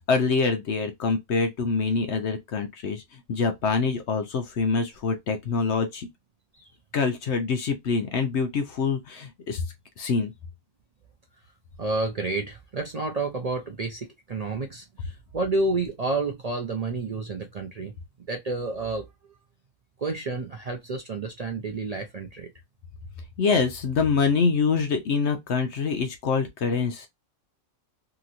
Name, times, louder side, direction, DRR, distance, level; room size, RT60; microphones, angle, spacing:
voice 1, 0.1-6.1 6.9-9.6 10.0-10.3 23.4-27.1, left 5 dB, 60° left, 0.8 m, -25 dB
voice 2, 11.8-17.9 18.3-19.0 20.0-22.5, right 3 dB, 60° right, 0.4 m, -30 dB
2.9 x 2.9 x 2.4 m
omnidirectional pair, 1.4 m